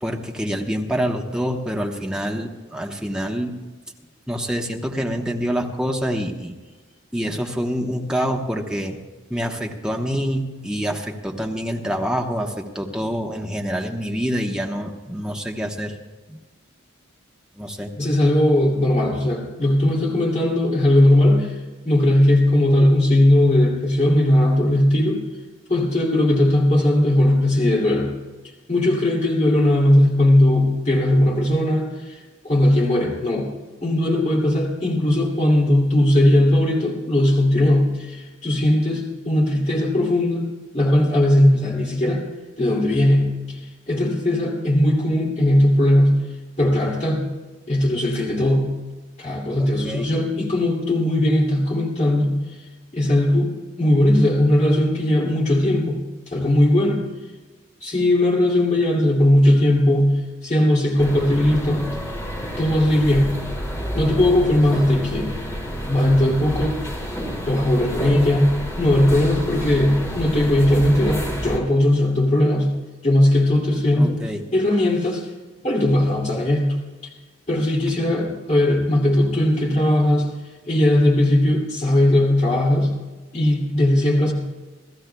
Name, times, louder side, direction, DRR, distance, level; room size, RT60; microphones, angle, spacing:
voice 1, 0.0-3.5 4.3-6.5 7.1-9.0 9.3-16.0 16.3-16.4 17.6-17.9 49.6-50.1 74.0-74.4, equal, 5° right, 1 dB, 1.0 m, -26 dB
voice 2, 18.0-21.5 21.8-25.3 25.7-28.2 28.7-32.2 32.4-33.5 33.8-40.5 40.7-42.2 42.6-43.6 43.9-46.2 46.6-47.3 47.7-48.7 49.2-52.3 52.9-56.0 56.3-57.1 57.8-60.1 60.4-61.9 62.6-63.4 63.9-65.3 65.9-66.8 67.5-72.7 73.0-74.2 74.5-75.3 75.6-76.8 77.5-80.3 80.7-82.9 83.3-84.3, left 1 dB, 35° left, -2 dB, 2.6 m, -18 dB
sound 1, 61.0-71.6, equal, 15° left, 1.7 m, -29 dB
30.0 x 13.5 x 2.3 m, 1.3 s
head